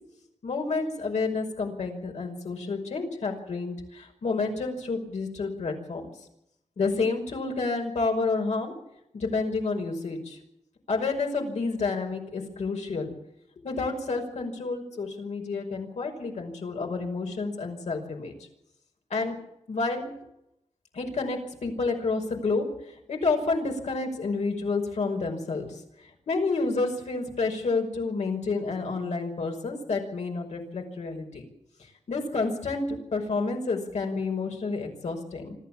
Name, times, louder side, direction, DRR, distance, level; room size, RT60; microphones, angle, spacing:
voice 1, 0.4-6.1 6.8-8.7 9.1-10.4 10.9-13.1 13.6-18.3 19.1-19.4 19.7-20.1 20.9-25.8 26.3-31.4 31.8-35.6, left 3 dB, 85° left, 2 dB, 5.5 m, -29 dB
26.0 x 13.5 x 7.4 m, 0.83 s
wide cardioid pair, 95°, 12 cm